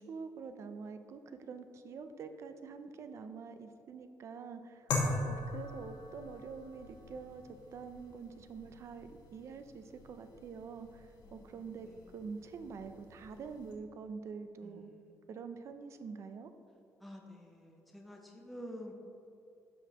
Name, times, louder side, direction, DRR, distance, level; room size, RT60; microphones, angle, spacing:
voice 1, 0.0-14.9 15.3-16.5, right 5 dB, 45° right, 9 dB, 0.4 m, -46 dB
sound 1, 4.9-13.7, left 2 dB, 85° left, 1.4 m, -42 dB
voice 2, 11.2-12.1 14.6-15.1 17.0-18.9, equal, ahead, 0 dB, 0.6 m, -50 dB
13.0 x 5.0 x 2.9 m, 2.7 s
cardioid pair, 170°, 7 cm